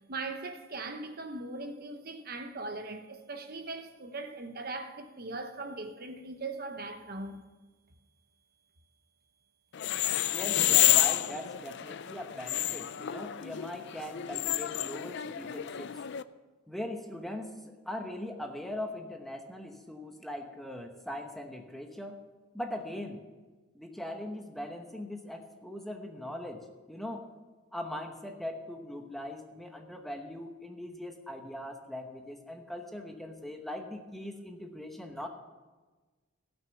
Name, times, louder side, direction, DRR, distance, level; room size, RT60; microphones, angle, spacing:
voice 1, 0.1-7.4, right 3 dB, 45° right, 0.9 m, -40 dB
sound 1, 9.7-16.2, left 13 dB, 50° left, 0.4 m, -29 dB
voice 2, 10.3-16.0 16.7-22.2 22.5-23.2 23.7-27.3 27.7-35.3, left 1 dB, ahead, 0.9 m, -40 dB
15.5 x 6.3 x 7.0 m
head